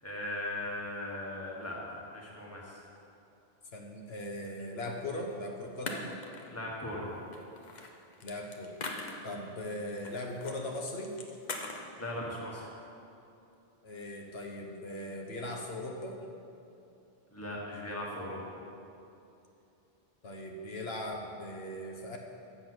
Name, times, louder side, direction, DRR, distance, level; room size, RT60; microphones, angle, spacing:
voice 1, 0.0-2.8 6.5-7.2 12.0-12.7 17.3-18.4, left 1 dB, 15° left, -3 dB, 1.3 m, -38 dB
voice 2, 3.7-6.1 8.2-8.7 9.2-11.1 13.8-16.2 20.2-22.2, left 1 dB, 75° left, 1 dB, 1.1 m, -39 dB
sound 1, 5.2-5.3 5.9-6.7 7.3-9.5 10.0-10.6 10.9-11.9, left 3 dB, 45° left, 0.8 m, -41 dB
7.7 x 6.9 x 6.0 m, 2.8 s
omnidirectional pair, 1.1 m